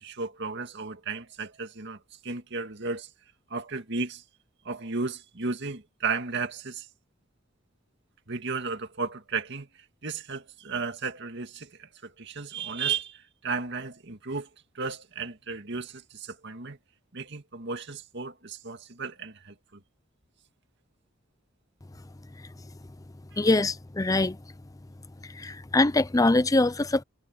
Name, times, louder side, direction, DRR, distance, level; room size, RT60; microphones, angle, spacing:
voice 1, 0.0-3.1 3.5-4.2 4.6-6.9 8.3-9.7 10.0-14.5 14.7-16.8 17.1-19.8 23.3-23.4, right 4 dB, 60° right, 2.1 m, -34 dB
voice 2, 23.4-24.4 25.2-27.0, left 2 dB, 15° left, 0.5 m, -23 dB
head